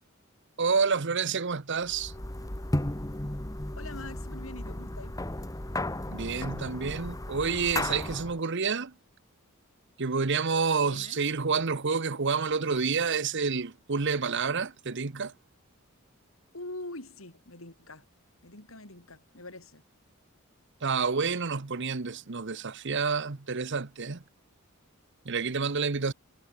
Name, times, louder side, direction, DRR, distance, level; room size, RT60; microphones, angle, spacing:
voice 1, 0.6-2.1 6.1-8.9 10.0-15.3 20.8-24.2 25.2-26.1, right 5 dB, 60° right, 1.0 m, -29 dB
sound 1, 1.9-8.4, left 1 dB, 15° left, 1.4 m, -34 dB
voice 2, 3.8-5.1 10.8-11.2 16.5-18.0 18.4-19.8, left 2 dB, 70° left, 5.0 m, -44 dB
head